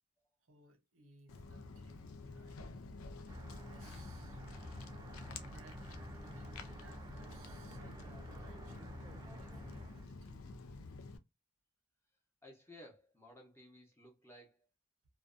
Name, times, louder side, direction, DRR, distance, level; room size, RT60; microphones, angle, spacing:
voice 1, 0.4-3.0 3.6-4.4 5.1-5.2 5.4-10.6, right 2 dB, 85° right, 0.7 m, -62 dB
Walk footsteps, 1.3-11.2, left 3 dB, 90° left, 0.4 m, -50 dB
sound 1, 3.3-10.1, right 1 dB, 20° right, 0.3 m, -51 dB
voice 2, 12.4-14.7, left 1 dB, 10° left, 0.8 m, -57 dB
2.5 x 2.2 x 2.3 m
head